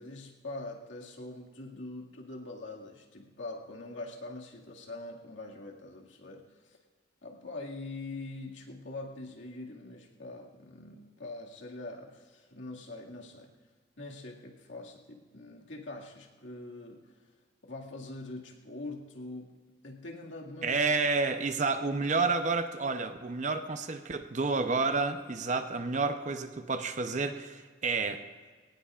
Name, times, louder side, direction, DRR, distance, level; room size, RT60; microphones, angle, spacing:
voice 1, 0.0-6.8 7.2-13.5 14.0-17.3 17.6-19.6 19.8-20.9, left 2 dB, 80° left, -1 dB, 2.0 m, -43 dB
voice 2, 20.6-28.2, right 4 dB, 40° right, 8 dB, 0.7 m, -30 dB
21.5 x 18.5 x 2.4 m, 1.5 s
head